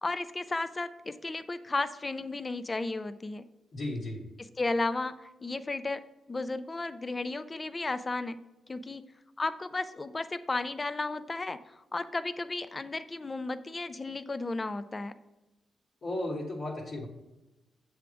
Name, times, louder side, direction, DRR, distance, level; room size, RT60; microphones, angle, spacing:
voice 1, 0.0-3.4 4.4-5.1 5.4-6.0 6.3-8.4 8.7-9.0 9.4-11.6 11.9-15.1, left 3 dB, 25° left, 12 dB, 0.4 m, -33 dB
voice 2, 3.7-4.2 16.0-17.1, left 1 dB, 60° left, -5 dB, 1.4 m, -34 dB
7.4 x 3.5 x 4.9 m, 1.0 s
cardioid pair, 90°, 0 cm